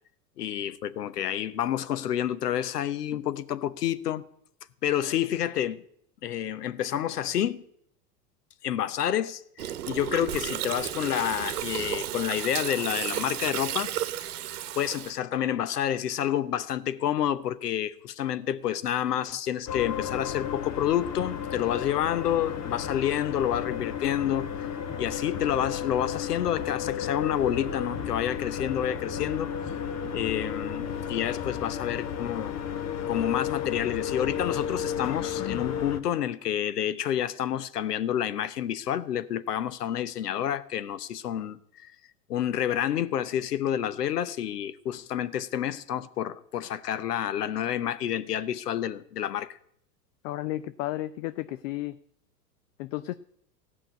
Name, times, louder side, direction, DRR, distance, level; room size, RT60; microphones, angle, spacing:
voice 1, 0.4-4.2 4.8-5.8 6.2-7.6 8.6-13.9 14.8-24.7 25.0-29.5 30.1-32.6 33.1-41.9 42.3-49.6, left 10 dB, 80° left, 0.9 m, -29 dB
Gurgling, 9.6-15.1, right 11 dB, 70° right, 1.1 m, -33 dB
sound 1, 19.7-36.0, left 8 dB, 35° left, 1.2 m, -33 dB
voice 2, 50.2-52.0 52.8-53.1, left 16 dB, 55° left, 0.7 m, -33 dB
16.0 x 6.1 x 9.2 m
hypercardioid pair, 95°, 47 cm